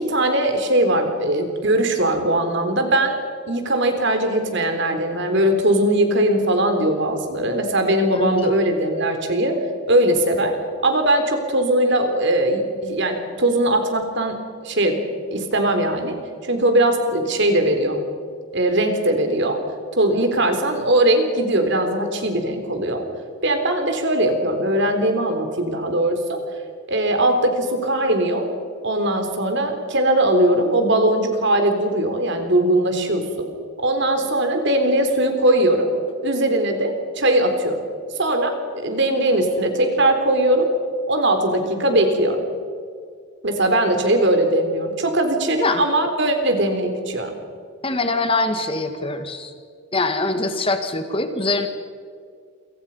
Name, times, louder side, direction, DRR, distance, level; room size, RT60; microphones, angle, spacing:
voice 1, 0.0-3.2 3.5-9.5 9.9-10.6 10.8-14.4 14.6-15.0 15.3-16.2 16.4-18.0 18.5-19.6 20.0-23.0 23.4-26.4 26.9-28.5 28.8-33.5 33.8-35.9 36.2-37.8 38.2-38.5 38.8-40.7 41.1-42.4 43.4-47.3, right 1 dB, 55° right, 5 dB, 3.7 m, -20 dB
voice 2, 8.1-8.5 45.6-45.9 47.8-49.5 49.9-51.7, left 2 dB, 25° left, 7 dB, 1.8 m, -23 dB
29.0 x 24.5 x 5.6 m, 2.1 s
head